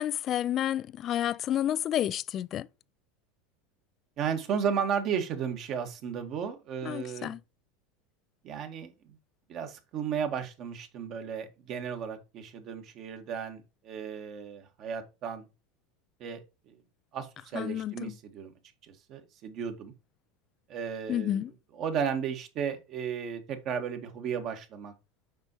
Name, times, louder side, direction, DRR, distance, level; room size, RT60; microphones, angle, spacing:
voice 1, 0.0-2.7 6.8-7.4 17.5-18.1 21.1-21.5, left 11 dB, 40° left, 0.3 m, -30 dB
voice 2, 4.2-7.3 8.4-9.2 9.5-15.4 16.2-16.7 17.1-18.5 18.8-19.9 20.7-21.4 21.7-24.9, right 7 dB, 50° right, 1.7 m, -34 dB
7.4 x 5.4 x 3.1 m
hypercardioid pair, 85°, 0 cm